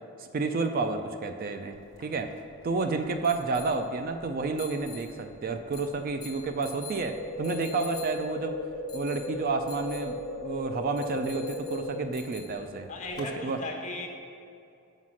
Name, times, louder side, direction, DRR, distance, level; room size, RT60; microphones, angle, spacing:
voice 1, 0.2-2.3 2.6-8.6 8.9-12.9 13.2-13.6, right 3 dB, 45° right, 7 dB, 0.4 m, -30 dB
sound 1, 1.7-13.3, left 5 dB, 20° left, 1.0 m, -49 dB
sound 2, 7.0-12.0, left 1 dB, 55° left, 0.9 m, -36 dB
voice 2, 12.9-14.1, left 2 dB, 35° left, 0 dB, 1.1 m, -36 dB
5.7 x 5.2 x 6.2 m, 2.6 s
head